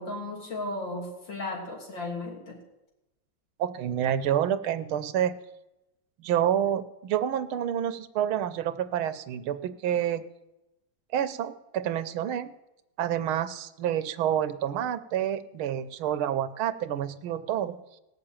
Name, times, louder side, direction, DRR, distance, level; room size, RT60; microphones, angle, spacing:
voice 1, 0.0-2.6, left 2 dB, 60° left, 0 dB, 3.7 m, -35 dB
voice 2, 3.6-5.4 6.2-10.2 11.1-12.5 13.0-17.8, right 10 dB, 85° right, 12 dB, 1.7 m, -28 dB
18.0 x 6.7 x 8.8 m, 0.94 s
omnidirectional pair, 2.2 m